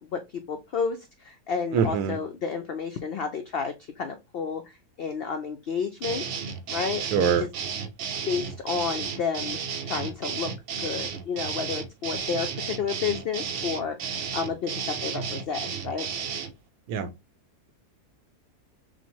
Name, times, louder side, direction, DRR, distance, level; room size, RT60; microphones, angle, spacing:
voice 1, 0.0-6.2 6.7-7.5 8.3-9.6 9.8-10.5 10.8-16.1, left 6 dB, 80° left, 0.5 m, -31 dB
voice 2, 1.7-2.2 7.1-7.5 16.9-17.1, right 7 dB, 85° right, 1.2 m, -23 dB
sound 1, 6.0-16.5, right 6 dB, 65° right, 0.8 m, -33 dB
6.0 x 2.1 x 2.9 m
omnidirectional pair, 1.6 m